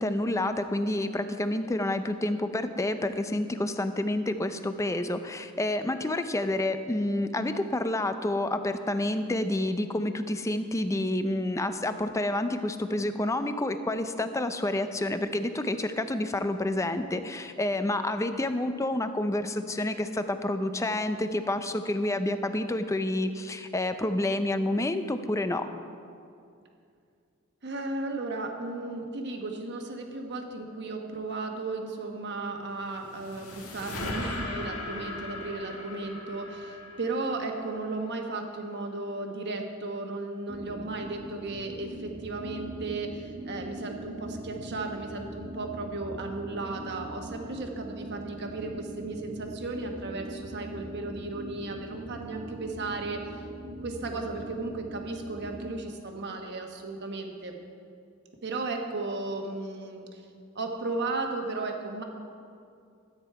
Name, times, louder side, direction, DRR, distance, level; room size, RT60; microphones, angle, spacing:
voice 1, 0.0-25.7, left 1 dB, 15° left, 9 dB, 0.5 m, -29 dB
voice 2, 27.6-53.5 53.8-57.6 58.4-60.2 60.5-62.0, right 3 dB, 55° right, 3 dB, 1.2 m, -35 dB
sound 1, 32.7-38.1, left 2 dB, 80° left, 1.8 m, -39 dB
sound 2, 40.5-55.8, right 1 dB, 40° right, 0.6 m, -41 dB
13.5 x 9.0 x 4.7 m, 2.4 s
head